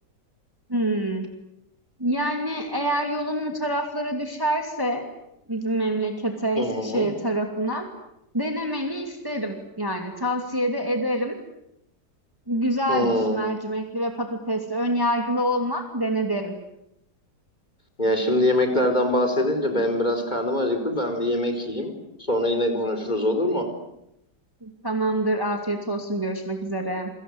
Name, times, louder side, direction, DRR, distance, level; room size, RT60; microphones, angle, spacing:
voice 1, 0.7-1.3 2.0-5.1 5.5-7.8 8.3-11.3 12.5-16.6 24.6-27.1, right 1 dB, 15° right, 4 dB, 2.6 m, -26 dB
voice 2, 6.6-7.1 12.9-13.4 18.0-21.9 22.3-23.6, left 1 dB, 25° left, 5 dB, 4.7 m, -23 dB
28.5 x 25.0 x 8.1 m, 0.80 s
omnidirectional pair, 1.8 m